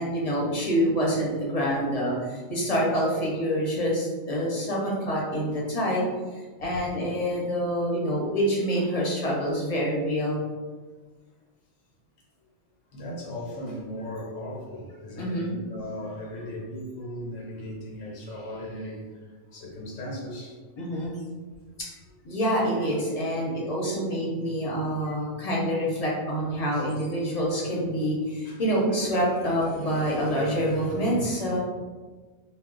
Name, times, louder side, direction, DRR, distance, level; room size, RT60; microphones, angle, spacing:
voice 1, 0.0-6.1 6.6-10.5 15.2-15.6 20.8-21.2 21.8-21.9 22.2-31.6, equal, 40° left, -4 dB, 0.7 m, -26 dB
voice 2, 12.9-20.6 28.4-28.6, left 1 dB, 80° left, -2 dB, 1.0 m, -37 dB
2.3 x 2.1 x 3.7 m, 1.4 s
omnidirectional pair, 1.2 m